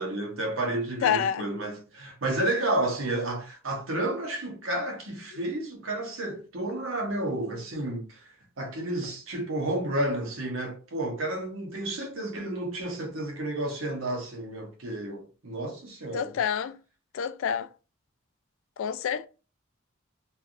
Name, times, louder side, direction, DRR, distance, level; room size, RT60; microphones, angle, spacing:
voice 1, 0.0-8.2 8.6-16.3, right 1 dB, 75° right, 0.9 m, -31 dB
voice 2, 1.0-1.5 16.1-16.8 17.1-17.7 18.8-19.3, left 8 dB, 70° left, 0.3 m, -27 dB
3.3 x 2.3 x 2.5 m
head